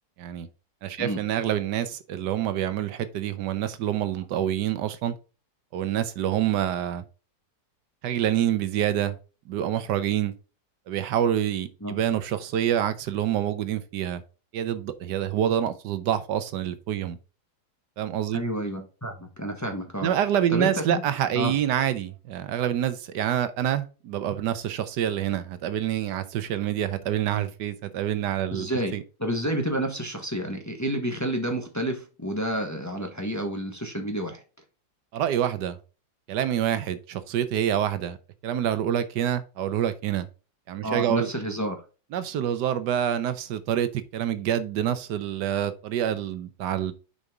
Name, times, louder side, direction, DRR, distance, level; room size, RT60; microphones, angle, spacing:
voice 1, 0.8-5.1 5.7-7.0 8.0-9.2 9.5-10.3 10.9-14.2 14.5-17.2 18.0-18.4 20.0-28.7 28.9-29.0 35.1-35.8 36.3-38.2 38.4-40.3 40.7-41.3 42.1-46.9, right 10 dB, 85° right, 1.4 m, -27 dB
voice 2, 18.3-20.1 20.5-21.0 21.3-21.5 28.5-28.9 29.2-34.4 40.8-41.8, right 1 dB, 10° left, 1.1 m, -29 dB
6.8 x 5.4 x 3.6 m
omnidirectional pair, 1.8 m